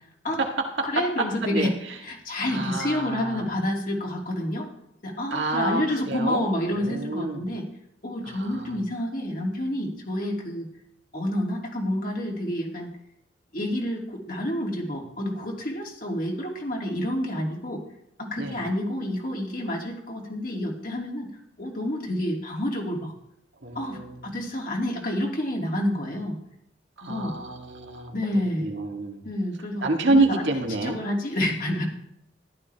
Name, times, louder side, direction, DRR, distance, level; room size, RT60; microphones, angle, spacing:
voice 1, 0.3-1.0 1.4-1.7 2.5-3.5 5.3-7.5 8.3-8.7 18.4-18.6 23.6-24.2 27.0-28.1 28.6-29.2 29.8-31.0, right 2 dB, 80° right, 2 dB, 1.8 m, -28 dB
voice 2, 0.8-1.7 2.0-4.7 5.0-7.6 8.0-10.7 11.1-12.9 13.5-17.8 18.2-21.3 21.6-23.1 23.7-26.4 27.0-27.4 28.1-28.7 29.2-31.8, left 1 dB, 50° left, -1 dB, 2.6 m, -29 dB
14.5 x 11.5 x 3.4 m, 0.76 s
head